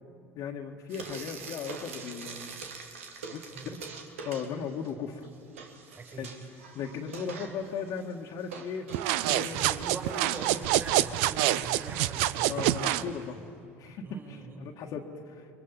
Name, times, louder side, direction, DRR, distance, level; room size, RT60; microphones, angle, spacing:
voice 1, 0.3-2.7 3.3-3.8 4.2-5.3 6.2-6.3 6.7-9.8 12.4-13.4 13.8-15.5, left 6 dB, 60° left, 1 dB, 1.7 m, -37 dB
Frying (food), 0.9-4.9 5.2-11.2, right 5 dB, 85° right, 1.8 m, -44 dB
voice 2, 6.0-6.3 9.5-12.7 14.0-14.7, right 3 dB, 30° right, -5 dB, 5.4 m, -42 dB
sound 1, 8.9-13.1, right 14 dB, 70° right, 0.6 m, -27 dB
29.5 x 22.5 x 5.5 m, 2.4 s
hypercardioid pair, 75°, 7 cm